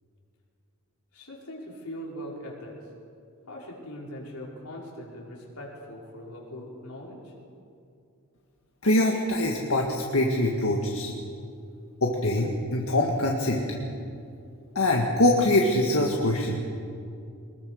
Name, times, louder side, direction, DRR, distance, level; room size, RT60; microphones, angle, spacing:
voice 1, 1.1-2.9 3.5-7.3, equal, 85° left, -2 dB, 4.9 m, -41 dB
voice 2, 8.8-11.1 12.0-13.7 14.8-16.6, left 1 dB, 70° left, 0 dB, 1.9 m, -23 dB
23.0 x 21.0 x 6.5 m, 2.5 s
head